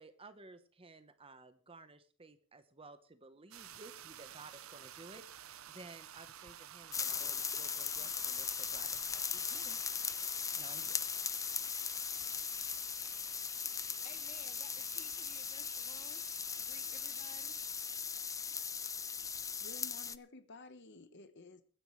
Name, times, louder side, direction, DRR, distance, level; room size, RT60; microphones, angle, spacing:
voice 1, 0.0-9.8 10.5-11.0, right 3 dB, 25° right, 1.0 m, -55 dB
sound 1, 3.5-17.8, right 10 dB, 75° right, 0.8 m, -54 dB
sound 2, 6.9-20.2, left 6 dB, 15° left, 0.5 m, -39 dB
voice 2, 13.6-17.7, left 3 dB, 35° left, 2.1 m, -58 dB
voice 3, 19.3-21.6, left 3 dB, 55° left, 1.2 m, -54 dB
22.5 x 10.0 x 3.2 m
head